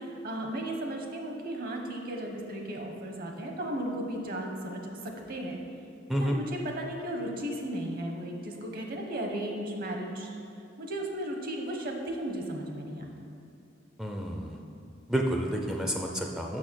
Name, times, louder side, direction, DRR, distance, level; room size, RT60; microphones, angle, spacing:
voice 1, 0.0-5.6 6.2-10.3 10.8-13.1, right 1 dB, 50° right, 2 dB, 1.0 m, -35 dB
voice 2, 14.0-14.6 15.1-16.6, equal, 5° right, 1 dB, 0.4 m, -30 dB
6.3 x 6.3 x 6.2 m, 2.6 s
head